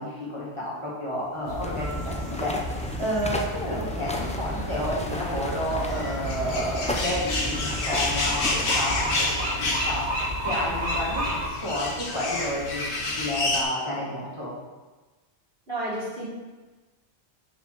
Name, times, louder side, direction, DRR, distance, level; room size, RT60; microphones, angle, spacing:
voice 1, 0.0-14.5, equal, 25° left, -8 dB, 2.0 m, -31 dB
sound 1, 1.4-11.5, equal, 80° right, 1.7 m, -32 dB
sound 2, 1.6-9.3, left 1 dB, 10° left, 0.4 m, -34 dB
sound 3, 2.5-13.6, left 2 dB, 55° left, 1.1 m, -31 dB
voice 2, 15.7-16.3, right 1 dB, 60° right, -9 dB, 3.0 m, -31 dB
5.8 x 4.8 x 6.0 m, 1.2 s
omnidirectional pair, 1.1 m